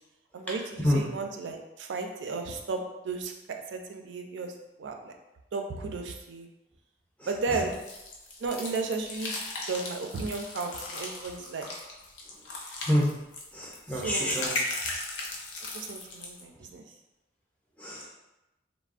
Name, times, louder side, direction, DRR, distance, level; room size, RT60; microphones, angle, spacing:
voice 1, 0.3-5.1 5.5-6.5 7.3-7.8 8.4-9.4 9.7-11.7 13.9-14.3 15.7-16.9, right 4 dB, 75° right, 4 dB, 0.4 m, -34 dB
sound 1, 7.7-16.4, left 2 dB, 75° left, 0.5 m, -37 dB
voice 2, 13.5-14.6 17.8-18.1, left 1 dB, 10° left, -4 dB, 0.4 m, -27 dB
3.2 x 2.0 x 2.4 m, 0.97 s
head